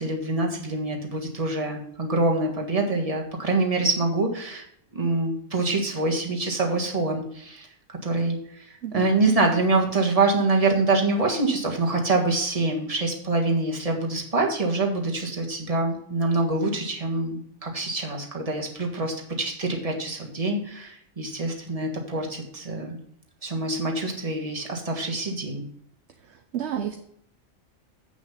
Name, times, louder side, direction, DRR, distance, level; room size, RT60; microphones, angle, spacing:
voice 1, 0.0-4.6 4.9-7.7 8.0-22.9 23.4-25.6, right 2 dB, 30° right, 0 dB, 1.7 m, -25 dB
voice 2, 8.8-9.3 26.3-27.0, right 9 dB, 65° right, 7 dB, 0.9 m, -31 dB
8.1 x 6.1 x 5.7 m, 0.68 s
omnidirectional pair, 1.3 m